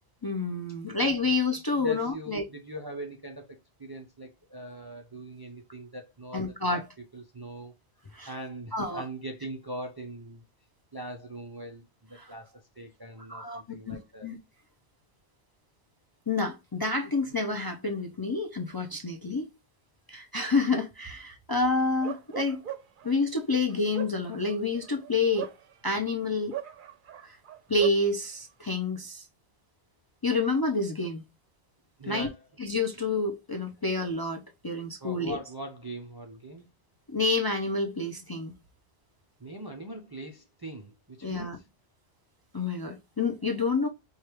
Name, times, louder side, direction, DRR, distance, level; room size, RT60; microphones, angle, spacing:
voice 1, 0.2-2.4 6.3-6.9 8.1-8.3 8.7-9.0 12.2-12.3 13.3-14.0 14.2-14.4 16.3-19.5 20.1-22.6 23.0-25.5 25.8-26.6 27.2-27.4 27.7-29.3 30.2-31.2 32.1-32.3 32.6-35.4 37.1-38.5 41.2-41.6 42.5-43.9, left 3 dB, 35° left, 0.4 m, -28 dB
voice 2, 1.8-6.8 7.1-7.7 8.3-10.4 10.9-14.3 32.0-32.5 35.0-36.7 39.4-41.7, right 1 dB, 35° right, 0.4 m, -41 dB
Bark, 22.0-23.1 23.7-26.1 26.5-28.0, right 10 dB, 60° right, 0.7 m, -38 dB
4.7 x 2.3 x 2.9 m
omnidirectional pair, 1.1 m